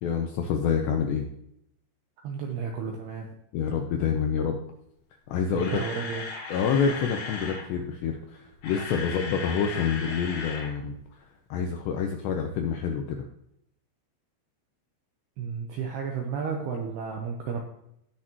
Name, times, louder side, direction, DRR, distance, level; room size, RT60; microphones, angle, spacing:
voice 1, 0.0-1.3 3.5-4.6 5.3-5.8 6.5-11.0 11.5-13.2, left 6 dB, 85° left, 4 dB, 2.6 m, -27 dB
voice 2, 2.2-3.3 5.5-6.2 8.9-9.1 15.4-17.6, right 6 dB, 80° right, 2 dB, 2.4 m, -32 dB
Camera, 5.3-7.7 8.4-10.7 11.0-11.1 11.6-11.7, left 4 dB, 55° left, 2.7 m, -37 dB
16.5 x 6.6 x 3.0 m, 0.77 s
omnidirectional pair, 5.9 m